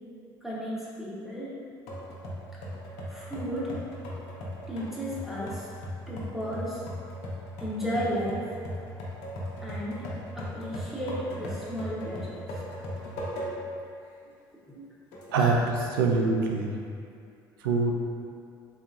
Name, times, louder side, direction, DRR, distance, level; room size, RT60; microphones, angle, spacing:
voice 1, 0.4-1.5 3.1-3.7 4.7-5.7 6.1-6.8 7.6-8.5 9.6-10.1 10.3-12.5 15.4-15.5, equal, 5° right, -8 dB, 1.1 m, -34 dB
sound 1, 1.9-13.8 14.3-14.4 15.1-15.7, equal, 70° left, 0.7 m, -38 dB
voice 2, 15.3-16.8 17.6-17.9, right 3 dB, 85° right, 1 dB, 0.4 m, -25 dB
3.8 x 2.9 x 2.5 m, 2.4 s
hypercardioid pair, 65°, 11 cm